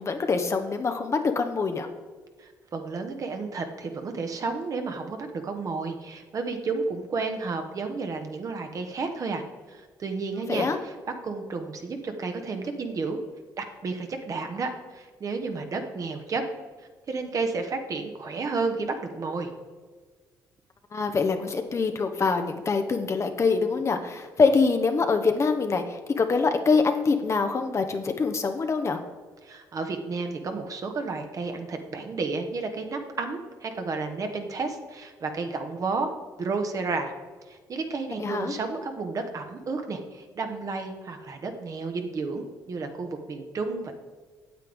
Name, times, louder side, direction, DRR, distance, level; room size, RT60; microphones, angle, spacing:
voice 1, 0.0-1.9 10.5-10.8 20.9-29.0 38.2-38.5, left 4 dB, 40° left, 6 dB, 0.8 m, -24 dB
voice 2, 2.4-9.4 9.7-10.9 11.2-13.2 13.6-16.4 17.1-19.5 29.4-36.1 36.4-37.1 37.5-43.9, right 4 dB, 50° right, 5 dB, 1.2 m, -32 dB
9.1 x 7.7 x 3.5 m, 1.5 s
supercardioid pair, 70°, 8 cm